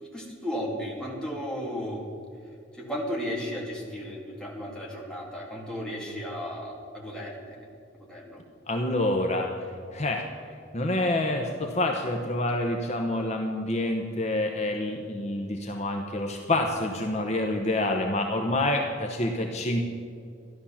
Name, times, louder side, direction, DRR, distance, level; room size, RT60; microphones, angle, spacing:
voice 1, 0.0-2.1 2.7-7.7 7.9-8.4 19.2-19.5, equal, 5° left, -3 dB, 2.6 m, -35 dB
voice 2, 8.7-9.7 9.9-10.3 10.7-19.8, left 1 dB, 35° left, 2 dB, 1.0 m, -27 dB
14.0 x 11.5 x 7.2 m, 2.4 s
head